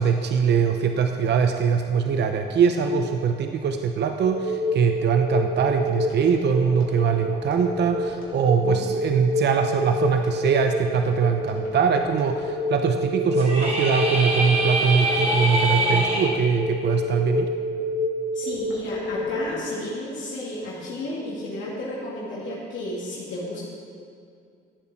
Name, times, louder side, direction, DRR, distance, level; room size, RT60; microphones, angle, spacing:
voice 1, 0.0-17.5, right 6 dB, 60° right, 5 dB, 0.7 m, -22 dB
Telephone, 4.2-19.5, left 1 dB, 90° left, 2.7 m, -28 dB
sound 1, 13.3-16.3, right 1 dB, 35° right, 2.5 m, -24 dB
voice 2, 18.3-23.7, left 1 dB, 70° left, -7 dB, 2.6 m, -33 dB
14.0 x 7.4 x 4.6 m, 2.4 s
cardioid pair, 90°, 20 cm